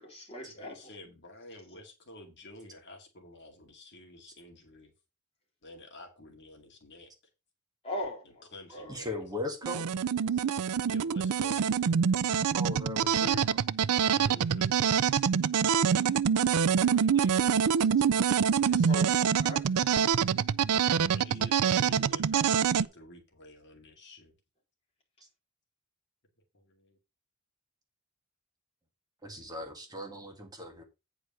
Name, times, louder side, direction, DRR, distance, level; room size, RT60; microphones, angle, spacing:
voice 1, 0.0-0.9 7.8-8.4 8.7-9.0 18.7-20.0, left 1 dB, 25° left, 3.8 m, -40 dB
voice 2, 0.6-4.9 5.6-7.1 8.5-9.2 10.3-10.5 10.9-11.6 14.0-14.7 16.1-16.2 18.6-19.2 19.8-19.9 20.8-24.3 26.5-27.0, left 1 dB, 55° left, 2.3 m, -50 dB
voice 3, 8.9-9.8 12.5-13.6 14.1-14.7 15.1-15.2 16.9-17.4 17.7-17.9 29.2-30.8, left 1 dB, 15° right, 1.9 m, -39 dB
sound 1, 9.6-22.9, right 7 dB, 90° right, 0.4 m, -26 dB
9.2 x 4.9 x 5.4 m
head